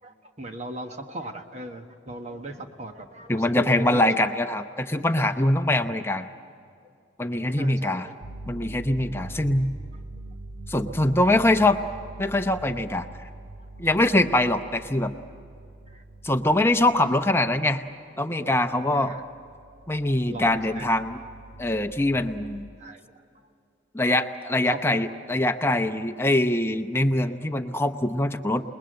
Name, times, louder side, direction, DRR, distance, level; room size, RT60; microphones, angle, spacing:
voice 1, 0.0-4.3 7.2-8.1 10.9-11.1 13.6-13.7 15.9-16.0 18.9-19.2 20.0-20.9 22.8-23.2 24.0-24.2 24.7-25.0, right 1 dB, 35° right, 4 dB, 1.3 m, -39 dB
voice 2, 3.3-6.3 7.2-8.1 8.5-9.7 10.7-11.8 12.2-13.1 13.8-15.1 16.2-17.8 18.2-19.2 19.9-21.2 21.6-22.7 23.9-28.6, left 1 dB, 15° left, 8 dB, 0.8 m, -23 dB
Pulse Breath, 8.2-17.9 18.8-22.7, right 2 dB, 75° right, 1.3 m, -43 dB
28.0 x 21.0 x 7.7 m, 2.4 s
head